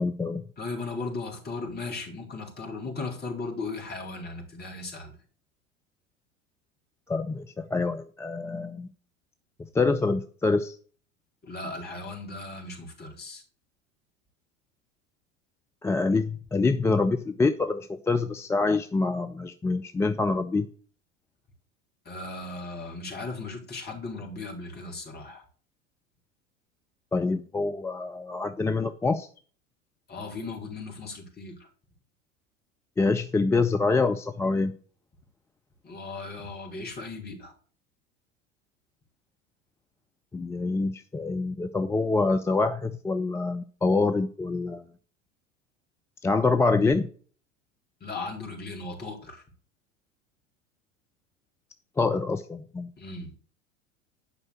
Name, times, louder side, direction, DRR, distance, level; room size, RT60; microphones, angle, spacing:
voice 1, 0.0-0.4 7.1-8.9 9.7-10.7 15.8-20.7 27.1-29.3 33.0-34.8 40.3-44.8 46.2-47.1 52.0-52.9, left 3 dB, 5° left, 7 dB, 0.4 m, -26 dB
voice 2, 0.6-5.2 11.4-13.4 22.1-25.4 30.1-31.7 35.8-37.5 48.0-49.4 53.0-53.3, left 3 dB, 25° left, 0 dB, 4.0 m, -37 dB
11.0 x 5.4 x 6.5 m, 0.43 s
figure-of-eight pair, 80°, 39 cm